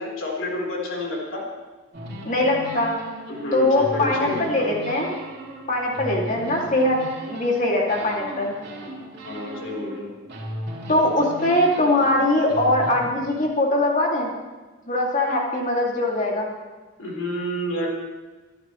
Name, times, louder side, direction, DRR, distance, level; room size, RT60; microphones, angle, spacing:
voice 1, 0.0-1.4 3.3-4.7 9.2-10.1 17.0-17.9, left 1 dB, 70° left, -3 dB, 4.1 m, -29 dB
sound 1, 1.9-7.6 7.9-10.0 10.3-13.0, equal, 50° right, 3.3 m, -36 dB
voice 2, 2.2-2.9 3.5-5.1 5.7-7.0 7.3-8.5 10.9-14.3 14.9-16.5, left 1 dB, 35° left, -2 dB, 2.6 m, -21 dB
23.5 x 12.0 x 3.3 m, 1.3 s
head